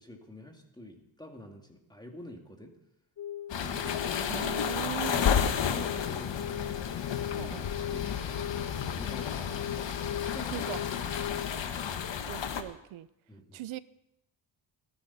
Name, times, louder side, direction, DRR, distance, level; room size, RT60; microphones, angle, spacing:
voice 1, 0.0-2.7 3.6-6.8 7.3-8.1 8.7-10.7 13.3-13.6, left 1 dB, 10° left, 2 dB, 2.5 m, -48 dB
sound 1, 3.2-11.6, left 10 dB, 40° left, 0.8 m, -39 dB
sound 2, 3.5-12.6, left 7 dB, 70° left, 1.5 m, -32 dB
voice 2, 4.3-5.3 7.4-7.7 10.5-10.8 11.5-11.9 12.3-13.1 13.5-13.8, right 14 dB, 90° right, 17 dB, 0.8 m, -40 dB
29.0 x 10.5 x 4.2 m, 0.82 s
cardioid pair, 100°, 46 cm